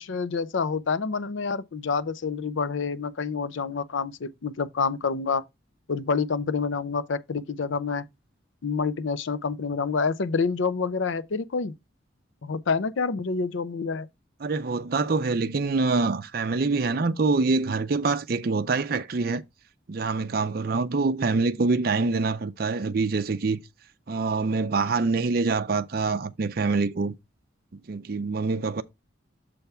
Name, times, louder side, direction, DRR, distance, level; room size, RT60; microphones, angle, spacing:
voice 1, 0.0-5.4 5.9-8.0 8.6-11.7 12.4-14.1, left 5 dB, 75° left, 0.5 m, -27 dB
voice 2, 14.4-19.4 19.9-23.6 24.1-27.1 27.9-28.8, right 4 dB, 50° right, 0.5 m, -25 dB
6.9 x 3.4 x 5.5 m
head